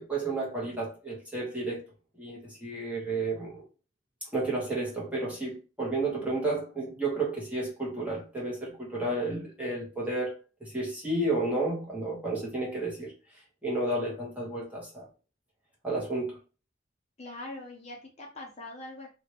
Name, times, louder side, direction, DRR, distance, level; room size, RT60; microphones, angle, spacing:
voice 1, 0.0-1.8 2.2-3.6 4.3-10.4 10.6-13.1 13.6-15.0 15.8-16.4, right 2 dB, 10° right, 1.3 m, -32 dB
voice 2, 17.2-19.1, left 2 dB, 35° left, 0.7 m, -42 dB
3.0 x 2.8 x 3.0 m
head